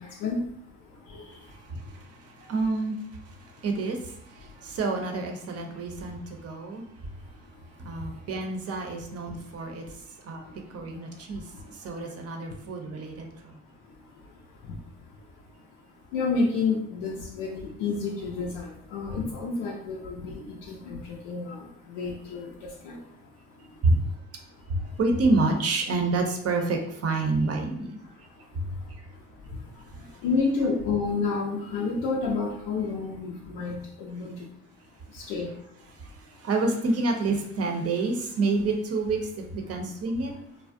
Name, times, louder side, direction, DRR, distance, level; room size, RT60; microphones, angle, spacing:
voice 1, 0.0-2.5 3.4-3.6 4.4-4.7 5.7-6.6 7.2-8.3 9.3-13.1 13.4-23.9 24.4-25.0 28.0-34.5 35.1-35.8 36.3-36.4, left 4 dB, 85° left, 0.5 m, -33 dB
voice 2, 1.7-3.0 3.3-3.4 3.6-6.9 7.8-9.8 10.2-10.4 10.7-11.4 11.7-13.6 23.8-24.0 24.7-28.0 28.6-28.7 36.0-36.1 36.4-40.3, right 3 dB, 40° right, 0.6 m, -28 dB
2.4 x 2.0 x 2.5 m
supercardioid pair, 70°, 38 cm